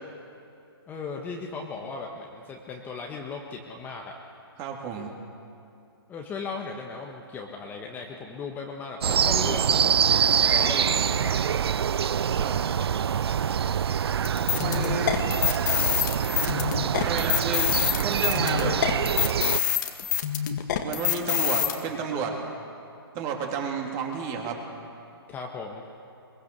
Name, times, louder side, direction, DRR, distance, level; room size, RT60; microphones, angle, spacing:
voice 1, 0.9-4.1 6.1-11.7 25.3-25.8, left 4 dB, 15° left, 1 dB, 1.4 m, -37 dB
voice 2, 4.6-5.1 12.4-12.6 14.6-15.1 17.0-18.8 20.8-22.4 23.1-24.6, right 5 dB, 25° right, 1 dB, 2.9 m, -31 dB
sound 1, 9.0-19.6, right 8 dB, 75° right, 0.4 m, -25 dB
sound 2, 14.2-21.7, left 10 dB, 45° left, 1.9 m, -26 dB
23.0 x 22.5 x 6.8 m, 2.6 s
hypercardioid pair, 150°, 13 cm